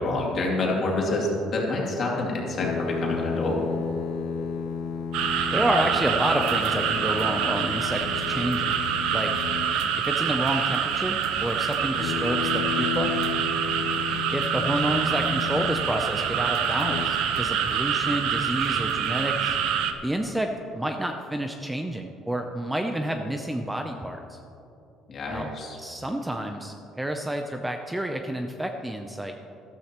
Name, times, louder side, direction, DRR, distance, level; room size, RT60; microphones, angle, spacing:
voice 1, 0.0-3.6 25.1-25.8, left 2 dB, 40° left, -2 dB, 2.5 m, -27 dB
sound 1, 2.6-9.9 11.9-16.1 16.7-17.1, left 6 dB, 75° left, 0.6 m, -33 dB
sound 2, 5.1-19.9, right 8 dB, 80° right, 0.8 m, -26 dB
voice 2, 5.5-9.3 10.0-13.1 14.3-19.5 20.0-20.5 20.7-24.4 25.3-25.5 25.8-29.3, right 1 dB, 5° right, 4 dB, 0.5 m, -29 dB
14.0 x 13.0 x 3.0 m, 2.9 s
cardioid pair, 155°, 0 cm